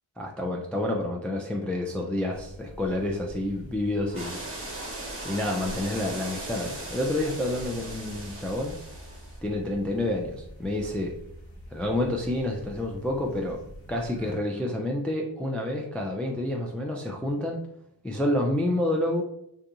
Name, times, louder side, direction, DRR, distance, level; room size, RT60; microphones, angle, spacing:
voice 1, 0.2-4.4 5.2-8.8 9.4-11.2 11.7-13.6 13.9-17.6 18.0-19.2, left 1 dB, 5° left, 0 dB, 0.3 m, -29 dB
sound 1, 2.3-14.3, equal, 70° left, 1.0 m, -45 dB
sound 2, 4.1-9.4, right 2 dB, 30° right, 1.0 m, -39 dB
2.4 x 2.3 x 2.8 m, 0.78 s
cardioid pair, 50°, 46 cm